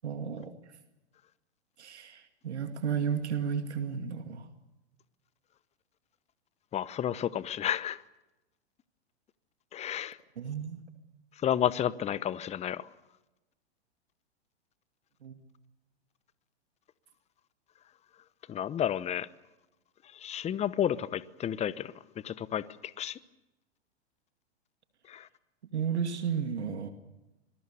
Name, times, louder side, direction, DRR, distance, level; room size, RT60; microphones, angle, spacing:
voice 1, 0.0-0.5 1.8-4.5 10.4-10.8 15.2-15.4 25.7-26.9, right 7 dB, 80° right, 7 dB, 2.4 m, -33 dB
voice 2, 6.7-8.0 9.7-10.2 11.4-12.9 18.5-19.3 20.2-21.9 22.2-22.6 23.0-23.2 25.1-25.2, left 10 dB, 20° left, 18 dB, 0.9 m, -31 dB
27.0 x 21.5 x 6.9 m, 1.0 s
hypercardioid pair, 110°, 33 cm